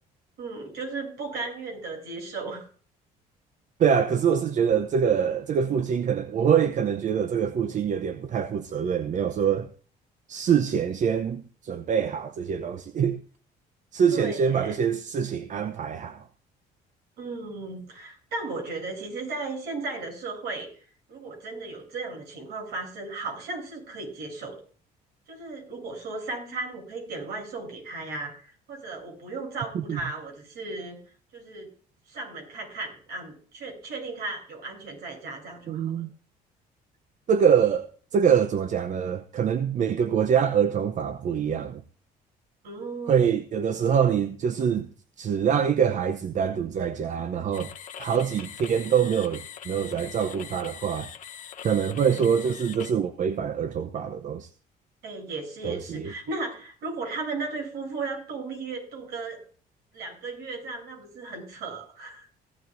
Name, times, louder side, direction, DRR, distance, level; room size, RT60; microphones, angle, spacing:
voice 1, 0.4-2.7 14.1-14.8 17.2-20.7 21.1-24.6 25.3-31.0 31.3-31.7 32.1-36.0 42.6-43.2 55.0-59.4 59.9-62.3, right 3 dB, 70° right, 7.9 m, -35 dB
voice 2, 3.8-9.7 10.3-13.2 13.9-16.2 29.9-30.0 35.7-36.1 37.3-41.8 43.1-44.9 45.2-47.7 48.0-51.1 51.6-54.5 55.6-56.1, right 7 dB, 45° right, 0.7 m, -24 dB
sound 1, 47.5-52.9, left 9 dB, 50° left, 0.9 m, -42 dB
16.5 x 12.5 x 2.6 m
cardioid pair, 110°, 17 cm